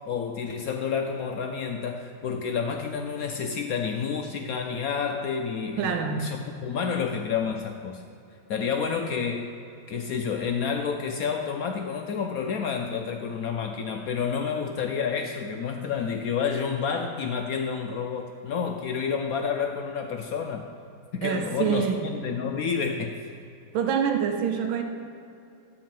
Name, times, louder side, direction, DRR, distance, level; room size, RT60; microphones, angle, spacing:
voice 1, 0.0-8.0 8.5-9.5 9.9-20.7 21.1-23.1, left 6 dB, 80° left, 4 dB, 0.8 m, -29 dB
voice 2, 5.8-6.2 21.2-22.1 23.7-24.8, right 7 dB, 80° right, 5 dB, 1.6 m, -26 dB
12.0 x 4.6 x 7.5 m, 2.6 s
omnidirectional pair, 2.2 m